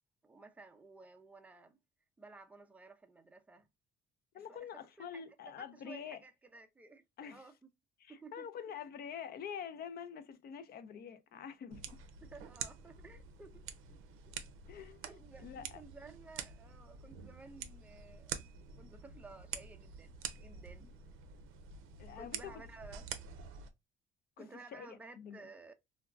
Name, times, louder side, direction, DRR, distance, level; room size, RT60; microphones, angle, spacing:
voice 1, 0.2-1.8 2.2-3.7 4.5-4.7 5.0-5.1 5.5-7.7 8.1-8.5 11.9-12.0 12.2-13.6 15.1-18.3 18.8-20.9 22.2-23.1 24.4-25.7, right 3 dB, 5° right, 0.4 m, -55 dB
voice 2, 4.3-6.2 7.2-7.4 8.0-11.8 14.7-15.1 15.4-15.8 22.0-22.6 24.4-24.5 24.7-25.5, left 7 dB, 50° left, 0.5 m, -46 dB
sound 1, 11.7-23.7, right 7 dB, 75° right, 0.5 m, -47 dB
3.5 x 2.3 x 2.3 m
cardioid pair, 115°, 21 cm